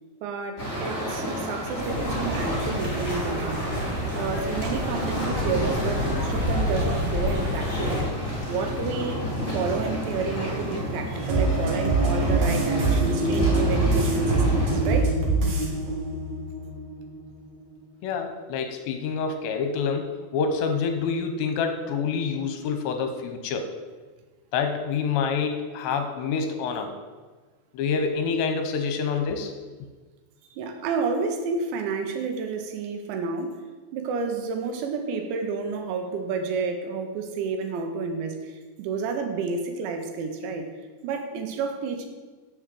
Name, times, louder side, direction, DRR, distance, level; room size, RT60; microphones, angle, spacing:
voice 1, 0.2-3.7 4.1-8.1 8.5-9.3 9.5-15.1 15.9-16.0 30.6-33.6 33.9-40.7 41.0-42.1, right 4 dB, 75° right, 5 dB, 3.2 m, -30 dB
sound 1, 0.6-15.0, equal, 25° left, 3.6 m, -30 dB
sound 2, 1.8-8.0, left 1 dB, 5° right, 2.5 m, -29 dB
sound 3, 11.2-17.2 17.6-17.7, right 2 dB, 60° right, 1.9 m, -24 dB
voice 2, 18.0-23.7 24.5-26.9 27.7-29.5, left 5 dB, 75° left, 6 dB, 2.9 m, -27 dB
7.3 x 6.3 x 7.6 m, 1.3 s
omnidirectional pair, 5.4 m